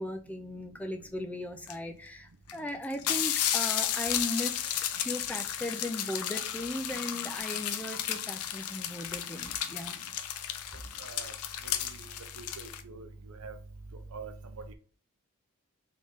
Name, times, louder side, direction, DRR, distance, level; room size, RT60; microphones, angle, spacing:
voice 1, 0.0-10.0, left 1 dB, 5° left, 0.4 m, -37 dB
sound 1, 1.7-1.8 2.5-2.6 2.8-12.8, left 10 dB, 80° left, 0.5 m, -33 dB
voice 2, 11.0-11.3 11.8-12.0 12.4-13.1 13.4-13.5 14.1-14.3, right 4 dB, 75° right, 0.6 m, -44 dB
3.6 x 3.2 x 3.9 m
head